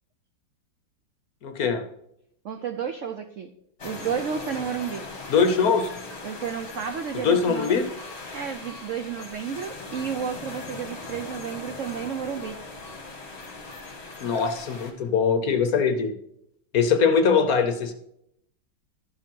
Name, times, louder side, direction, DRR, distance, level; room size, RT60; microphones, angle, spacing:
voice 1, 1.4-1.8 5.3-5.9 7.2-7.9 14.2-16.1 16.7-17.9, left 5 dB, 60° left, 8 dB, 1.1 m, -22 dB
voice 2, 2.4-3.5 3.8-5.1 6.2-7.8 8.3-12.6, right 7 dB, 75° right, 8 dB, 0.7 m, -32 dB
sound 1, 3.8-14.9, left 3 dB, 35° left, 1.8 m, -39 dB
12.0 x 5.0 x 5.4 m, 0.75 s
omnidirectional pair, 2.1 m